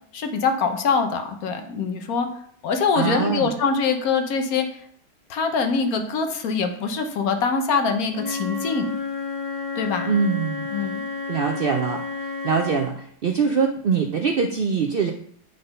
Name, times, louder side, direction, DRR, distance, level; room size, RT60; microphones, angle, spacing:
voice 1, 0.1-2.3 2.6-4.8 5.3-8.9 9.8-10.1 10.7-11.0, left 5 dB, 65° left, 6 dB, 1.4 m, -24 dB
voice 2, 2.9-3.5 10.0-10.7 11.3-15.1, right 5 dB, 75° right, 3 dB, 0.5 m, -23 dB
Wind instrument woodwind instrument, 8.1-12.9, left 4 dB, 30° left, 1.2 m, -31 dB
8.7 x 3.9 x 5.4 m, 0.64 s
omnidirectional pair, 1.7 m